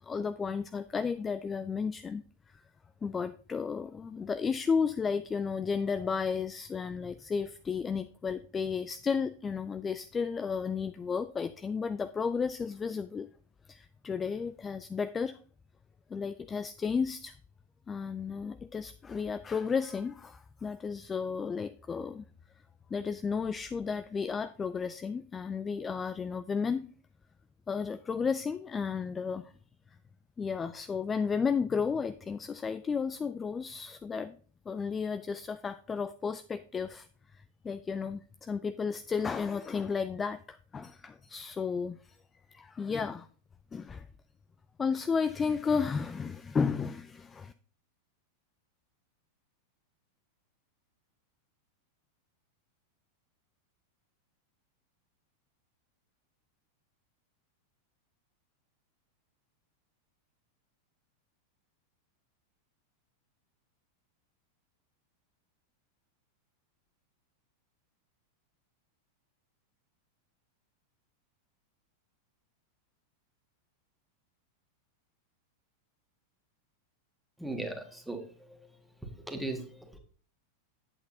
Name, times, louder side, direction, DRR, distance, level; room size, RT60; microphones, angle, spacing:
voice 1, 0.0-2.6 3.0-13.3 13.7-15.4 16.1-17.3 17.9-22.2 22.9-26.8 27.7-29.5 30.4-34.4 34.7-37.1 37.3-42.2 42.5-43.3 43.7-44.1 44.8-47.5, left 5 dB, 20° left, 11 dB, 0.3 m, -33 dB
voice 2, 77.4-78.6 79.3-80.0, right 2 dB, ahead, 4 dB, 1.4 m, -38 dB
8.4 x 8.1 x 2.7 m, 0.42 s
figure-of-eight pair, 90°, 0 cm